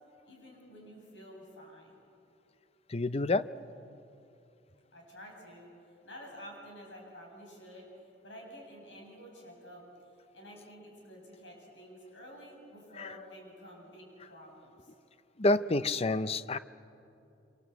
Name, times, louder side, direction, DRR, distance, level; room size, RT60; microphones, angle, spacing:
voice 1, 0.3-2.0 4.9-5.7 6.0-7.9 8.2-9.8 10.3-14.9, equal, 90° left, 0 dB, 7.6 m, -50 dB
voice 2, 2.9-3.5 13.0-13.1 15.4-16.6, left 2 dB, 35° left, 14 dB, 0.6 m, -28 dB
26.5 x 26.0 x 8.2 m, 2.7 s
head